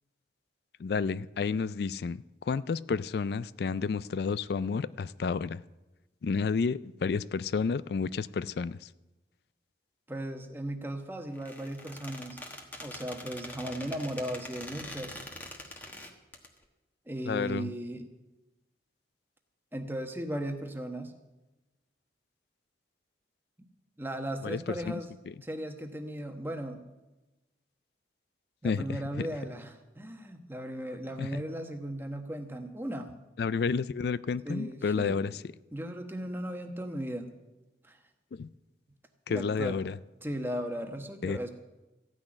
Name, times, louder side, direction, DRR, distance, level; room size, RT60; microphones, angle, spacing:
voice 1, 0.8-5.6 6.2-8.9 17.3-17.7 24.4-25.0 25.3-25.4 28.6-29.3 31.2-31.3 33.4-35.3 38.3-38.5 39.3-40.0 41.2-41.4, left 5 dB, 60° left, 18 dB, 0.3 m, -31 dB
voice 2, 10.1-12.4 12.8-15.2 17.1-18.1 19.7-21.1 24.0-25.1 25.4-26.8 28.6-33.1 34.4-35.2 35.7-37.3 37.8-38.0 39.3-39.8 40.2-41.5, right 1 dB, 10° right, 5 dB, 1.1 m, -36 dB
Squeak, 11.3-16.5, left 1 dB, 10° left, 1.2 m, -44 dB
15.0 x 6.3 x 9.8 m, 1.1 s
head